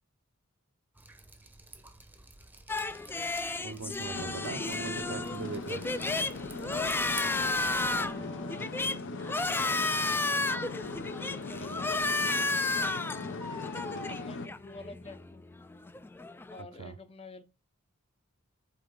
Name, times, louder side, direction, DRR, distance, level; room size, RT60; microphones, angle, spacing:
Drip, 0.9-8.1, right 3 dB, 10° right, 0.8 m, -51 dB
sound 1, 2.7-16.6, left 3 dB, 10° left, 0.3 m, -33 dB
voice 1, 3.6-5.8 16.8-17.0, right 5 dB, 70° right, 0.5 m, -40 dB
sound 2, 4.1-14.5, left 3 dB, 60° left, 0.7 m, -39 dB
voice 2, 7.9-8.7 9.4-10.2 11.0-13.8 14.1-15.5 16.5-17.4, left 2 dB, 30° left, 0.8 m, -48 dB
8.5 x 3.8 x 3.7 m
head